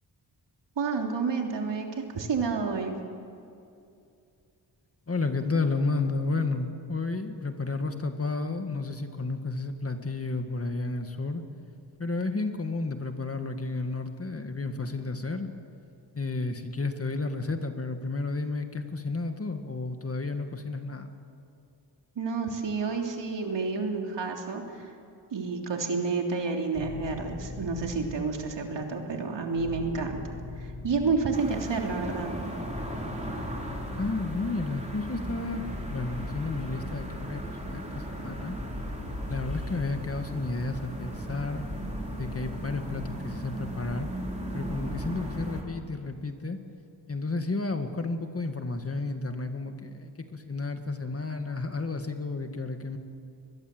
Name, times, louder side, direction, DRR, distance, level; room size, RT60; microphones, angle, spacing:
voice 1, 0.8-3.0 22.1-24.9 25.3-32.3, right 4 dB, 80° right, 2 dB, 3.3 m, -30 dB
voice 2, 5.1-11.4 12.0-15.5 16.1-21.1 34.0-38.6 39.3-41.6 42.1-44.1 44.5-46.6 47.1-53.0, left 3 dB, 30° left, 6 dB, 1.9 m, -32 dB
sound 1, 26.7-28.5 29.5-31.5 32.5-34.5 35.5-37.7 38.5-40.7 41.5-43.5 44.5-45.5, left 3 dB, 65° left, 5.3 m, -41 dB
sound 2, 31.3-45.6, right 1 dB, 15° right, 4.0 m, -37 dB
24.0 x 21.0 x 7.9 m, 2.5 s
wide cardioid pair, 105°, 43 cm